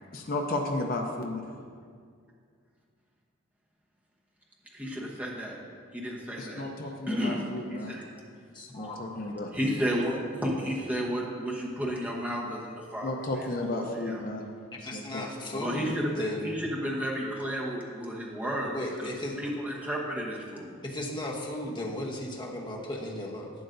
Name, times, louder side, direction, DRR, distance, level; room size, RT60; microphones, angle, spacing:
voice 1, 0.1-1.5 6.4-7.9 8.7-9.8 13.0-14.5 14.9-15.3 15.8-15.9, left 2 dB, 40° left, 1 dB, 0.6 m, -33 dB
voice 2, 4.7-5.6 5.9-6.6 7.1-7.4 7.7-8.0 9.5-13.1 13.7-14.2 15.6-19.1 19.4-20.7, equal, 5° right, -3 dB, 1.0 m, -32 dB
voice 3, 8.5-9.0 14.8-16.6 18.6-19.3 20.8-23.5, left 1 dB, 20° left, -1 dB, 0.9 m, -36 dB
11.5 x 7.8 x 2.6 m, 2.1 s
head